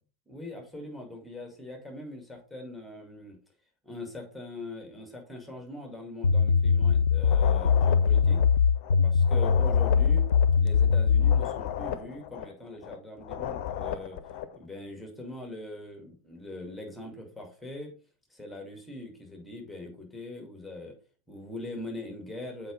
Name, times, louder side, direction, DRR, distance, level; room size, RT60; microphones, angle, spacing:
voice 1, 0.3-3.4 3.8-8.4 9.0-10.3 10.6-14.2 14.5-17.9 18.3-21.0 21.3-22.7, left 1 dB, 5° left, 2 dB, 2.2 m, -42 dB
sound 1, 6.2-11.4, left 6 dB, 70° left, 0.4 m, -22 dB
sound 2, 7.2-14.6, left 10 dB, 45° left, 0.8 m, -36 dB
7.7 x 4.9 x 3.9 m, 0.37 s
figure-of-eight pair, 90°, 0 cm